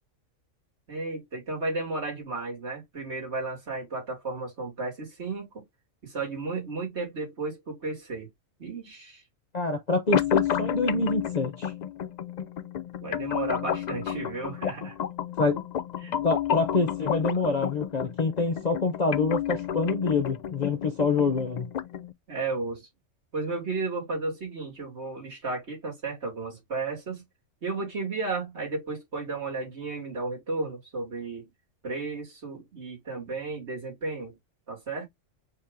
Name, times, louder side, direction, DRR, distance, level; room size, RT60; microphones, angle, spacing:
voice 1, 0.9-5.6 6.0-8.3 8.6-9.2 10.1-10.2 13.0-15.0 16.0-16.2 22.3-22.9 23.3-27.2 27.6-31.5 31.8-34.4 34.7-35.1, right 3 dB, 55° right, 2.7 m, -33 dB
voice 2, 9.5-11.7 15.4-15.6 16.2-21.7, left 3 dB, 40° left, 0.7 m, -26 dB
sound 1, 10.1-22.1, left 9 dB, 85° left, 0.3 m, -31 dB
5.0 x 2.8 x 3.6 m
omnidirectional pair, 1.3 m